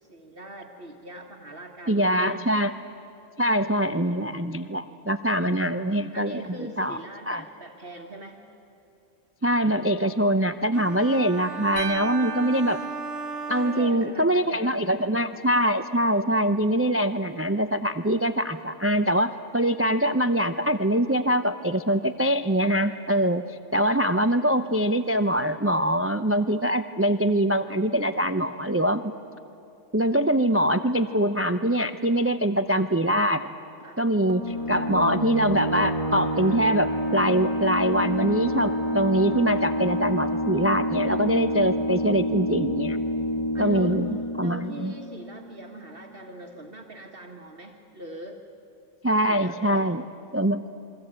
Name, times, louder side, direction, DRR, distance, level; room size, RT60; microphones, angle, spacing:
voice 1, 0.0-2.4 6.1-8.4 13.5-14.8 33.8-34.0 43.5-44.0 44.4-48.4 49.3-49.9, right 1 dB, 50° right, 2 dB, 1.7 m, -42 dB
voice 2, 1.9-2.7 3.4-7.0 7.3-7.4 9.4-12.8 13.5-29.1 29.9-33.5 34.0-43.0 43.6-44.1 44.4-44.9 49.0-50.0 50.3-50.6, equal, 20° right, 10 dB, 0.4 m, -23 dB
sound 1, 10.7-14.6, right 4 dB, 70° right, 1.7 m, -36 dB
sound 2, 11.8-14.0, right 7 dB, 85° right, 1.5 m, -37 dB
sound 3, 34.3-45.6, equal, 30° left, 2.0 m, -28 dB
28.0 x 23.0 x 8.9 m, 2.7 s
omnidirectional pair, 1.3 m